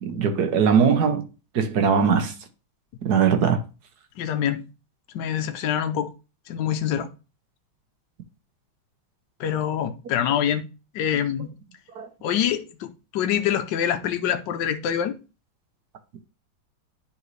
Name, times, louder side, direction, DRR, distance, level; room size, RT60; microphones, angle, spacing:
voice 1, 0.0-1.3 1.5-2.3 3.0-3.6 11.9-12.1, right 6 dB, 60° right, 1.3 m, -20 dB
voice 2, 4.2-4.6 5.1-6.1 6.5-7.1 9.4-10.6 10.9-11.5 12.2-15.2, left 9 dB, 70° left, 1.3 m, -25 dB
10.0 x 4.0 x 3.2 m
omnidirectional pair, 2.2 m